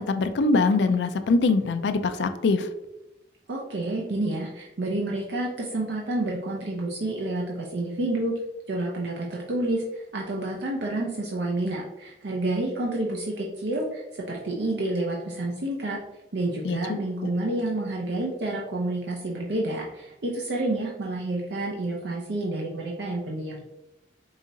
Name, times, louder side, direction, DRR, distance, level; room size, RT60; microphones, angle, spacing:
voice 1, 0.0-2.7 16.6-17.0, left 3 dB, 85° left, 9 dB, 0.4 m, -23 dB
voice 2, 3.5-8.3 8.7-9.8 10.1-14.0 14.3-16.0 16.3-23.6, right 2 dB, 85° right, -3 dB, 0.6 m, -29 dB
4.8 x 2.8 x 2.6 m, 0.92 s
head